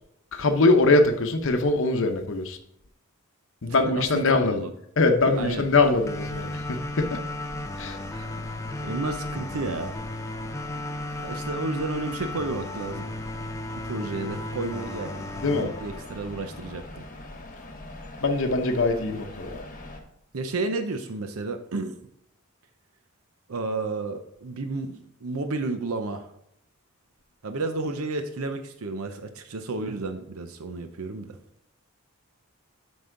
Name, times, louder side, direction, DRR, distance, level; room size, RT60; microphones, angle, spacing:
voice 1, 0.3-2.6 3.6-4.6 5.0-7.2 7.8-8.0 15.4-15.7 18.2-19.6, left 3 dB, 60° left, 6 dB, 0.8 m, -22 dB
voice 2, 3.7-4.7 5.4-5.7 8.1-8.5 8.8-10.0 11.2-13.1 13.8-17.1 20.3-21.9 23.5-26.3 27.4-31.4, right 3 dB, 80° right, 7 dB, 0.7 m, -32 dB
sound 1, 5.3-20.0, left 1 dB, 35° left, 1.1 m, -43 dB
sound 2, 6.1-17.0, left 2 dB, 15° left, 0.4 m, -35 dB
7.8 x 5.4 x 3.8 m, 0.73 s
head